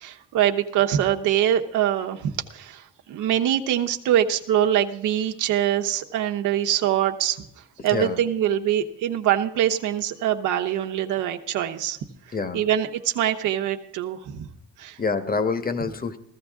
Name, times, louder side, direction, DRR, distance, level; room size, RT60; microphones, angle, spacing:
voice 1, 0.0-2.8 3.1-7.5 7.8-12.0 12.5-14.5 14.8-15.0, right 11 dB, 90° right, 5 dB, 1.1 m, -24 dB
voice 2, 7.8-8.2 12.3-12.6 15.0-16.2, left 4 dB, 30° left, 11 dB, 1.3 m, -26 dB
15.5 x 13.5 x 3.6 m, 0.76 s
cardioid pair, 90°, 30 cm